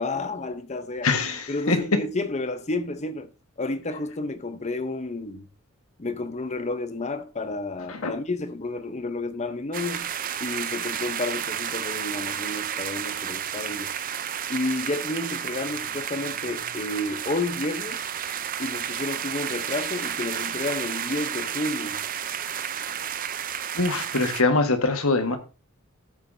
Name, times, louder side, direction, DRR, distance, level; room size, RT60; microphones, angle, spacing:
voice 1, 0.0-1.1 1.5-3.3 3.6-5.5 6.0-10.1 10.4-13.9 14.5-18.0 18.6-22.0, left 2 dB, 30° left, 0.7 m, -31 dB
voice 2, 1.0-1.8 7.9-8.1 23.7-25.4, left 3 dB, 70° left, 1.5 m, -23 dB
sound 1, 9.7-24.4, right 9 dB, 40° right, 0.5 m, -31 dB
14.0 x 7.4 x 2.7 m
head